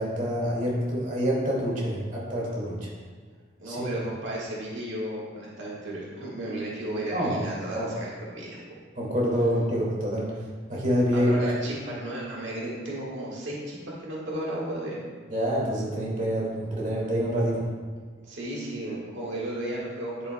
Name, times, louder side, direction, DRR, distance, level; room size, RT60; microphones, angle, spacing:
voice 1, 0.0-2.9 3.7-3.9 7.1-7.4 7.7-7.9 9.0-10.4 10.7-11.4 15.3-17.6, equal, 45° right, -5 dB, 2.0 m, -26 dB
voice 2, 3.6-8.6 11.1-13.8 14.0-15.0 18.2-20.3, right 1 dB, 80° right, -5 dB, 1.6 m, -34 dB
9.6 x 7.9 x 2.2 m, 1.5 s
head